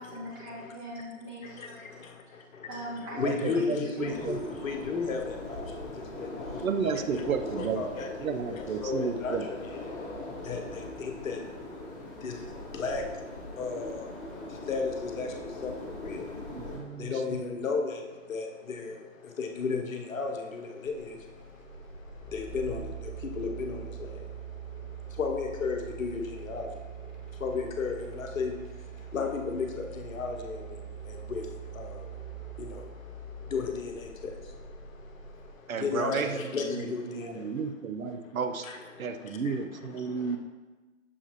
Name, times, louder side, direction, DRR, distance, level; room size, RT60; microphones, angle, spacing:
voice 1, 0.0-1.8 2.7-4.1, equal, 15° right, -4 dB, 0.7 m, -41 dB
voice 2, 1.4-2.7 3.1-37.5 38.1-38.2 38.6-40.4, left 4 dB, 75° left, 3 dB, 0.8 m, -36 dB
voice 3, 3.2-4.4 6.6-7.8 8.2-9.5 16.5-17.2 35.7-38.7 39.0-40.4, right 5 dB, 90° right, 8 dB, 0.6 m, -32 dB
sound 1, 4.0-16.8, left 2 dB, 20° left, 1.2 m, -41 dB
sound 2, 20.8-35.5, right 7 dB, 65° right, 0.9 m, -43 dB
6.5 x 2.9 x 2.9 m, 1.2 s
hypercardioid pair, 140°, 40 cm